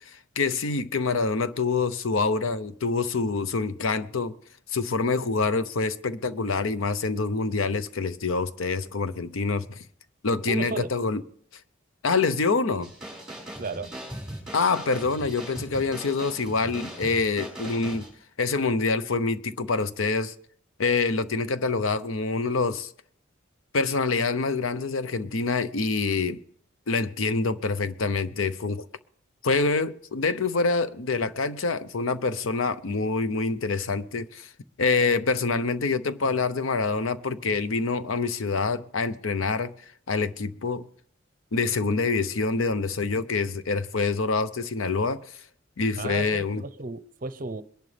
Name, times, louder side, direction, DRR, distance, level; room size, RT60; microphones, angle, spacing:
voice 1, 0.1-4.3 4.7-9.8 10.2-11.2 12.0-12.9 14.5-18.1 18.4-20.3 20.8-22.9 23.7-26.4 26.9-28.9 29.4-34.5 34.8-39.7 40.1-40.9 41.5-45.4 45.8-46.6, left 4 dB, 85° left, 0.7 m, -26 dB
voice 2, 10.5-10.9 13.6-14.0 46.0-47.6, right 3 dB, 45° right, 0.7 m, -34 dB
sound 1, 12.8-18.1, right 1 dB, 5° right, 5.3 m, -39 dB
22.0 x 11.0 x 3.4 m
head